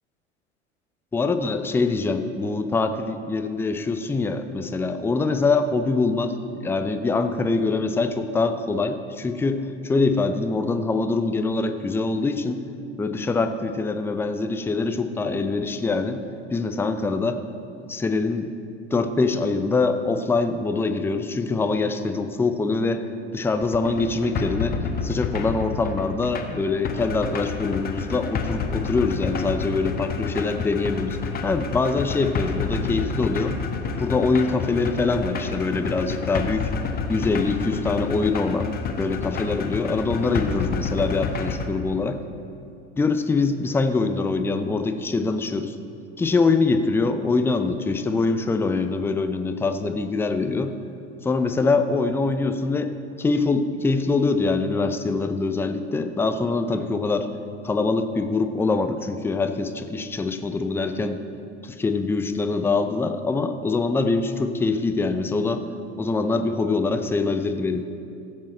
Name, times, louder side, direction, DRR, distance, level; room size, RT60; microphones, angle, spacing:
voice 1, 1.1-12.6 13.0-16.2 16.5-17.4 17.9-18.5 18.9-31.2 31.4-33.6 34.0-36.7 37.1-42.2 43.0-45.7 46.2-50.7 51.2-52.9 53.2-57.3 57.6-61.2 61.6-65.6 66.0-67.8, left 3 dB, 5° left, 8 dB, 0.5 m, -24 dB
sound 1, 23.5-41.6, left 5 dB, 25° left, 1.1 m, -29 dB
15.0 x 7.4 x 4.3 m, 2.6 s
figure-of-eight pair, 80°, 35 cm